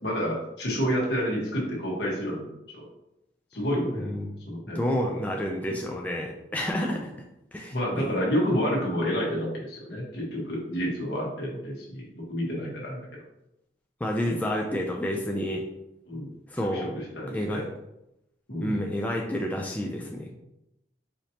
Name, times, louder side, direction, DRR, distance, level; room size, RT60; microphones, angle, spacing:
voice 1, 0.0-2.9 3.5-4.1 4.5-4.9 6.7-7.0 7.7-13.0 14.2-14.4 16.1-16.3 16.7-17.6 18.5-18.8, equal, 70° left, -4 dB, 1.3 m, -29 dB
voice 2, 4.0-4.3 4.8-7.1 7.5-8.1 14.0-15.6 16.5-17.0 17.3-17.6 18.6-20.3, equal, 10° left, 0 dB, 0.3 m, -29 dB
4.9 x 2.7 x 2.9 m, 0.86 s
head